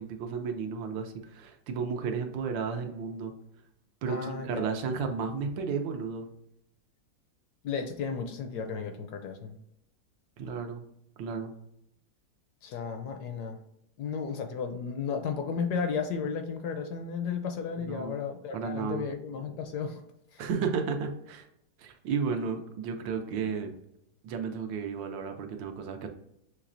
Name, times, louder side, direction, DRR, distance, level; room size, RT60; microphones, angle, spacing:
voice 1, 0.0-3.3 4.0-6.3 10.4-10.8 11.2-11.5 17.8-18.2 18.5-19.1 20.4-21.5 21.8-23.7 24.2-26.1, right 5 dB, 85° right, 5 dB, 1.4 m, -33 dB
voice 2, 4.1-4.7 7.6-9.6 12.6-13.6 14.0-20.0 20.3-20.4, left 6 dB, 75° left, 6 dB, 1.0 m, -34 dB
6.1 x 3.1 x 2.5 m, 0.79 s
omnidirectional pair, 2.0 m